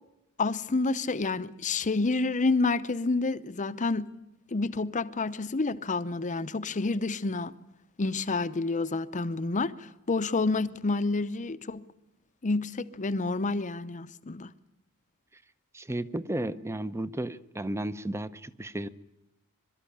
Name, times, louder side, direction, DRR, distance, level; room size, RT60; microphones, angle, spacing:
voice 1, 0.4-4.1 4.5-7.5 8.0-11.9 12.4-14.5, left 3 dB, 35° left, 0.7 m, -29 dB
voice 2, 15.7-18.9, right 1 dB, 10° right, 0.6 m, -33 dB
23.5 x 13.0 x 9.9 m
head